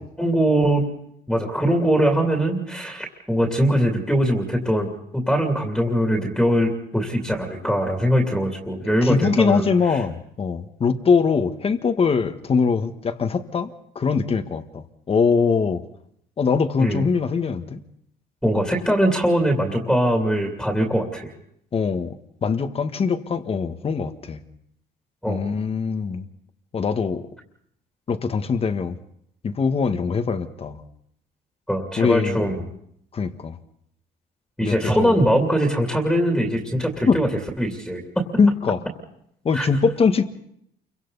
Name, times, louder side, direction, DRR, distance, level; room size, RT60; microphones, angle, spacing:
voice 1, 0.2-0.8 1.3-4.9 5.1-10.0 16.8-17.0 18.4-21.3 25.2-25.4 31.7-32.6 34.6-37.3 37.6-38.2 39.5-39.7, equal, ahead, 1 dB, 2.8 m, -21 dB
voice 2, 9.0-13.7 13.9-15.8 16.4-17.8 21.7-22.1 22.4-24.4 25.3-26.2 26.7-27.2 28.1-29.0 29.4-30.8 32.0-32.4 33.1-33.6 34.6-35.2 37.1-37.2 38.4-38.8 39.4-40.3, left 5 dB, 35° left, 8 dB, 1.5 m, -22 dB
28.5 x 24.0 x 4.1 m, 0.72 s
cardioid pair, 110°, 17 cm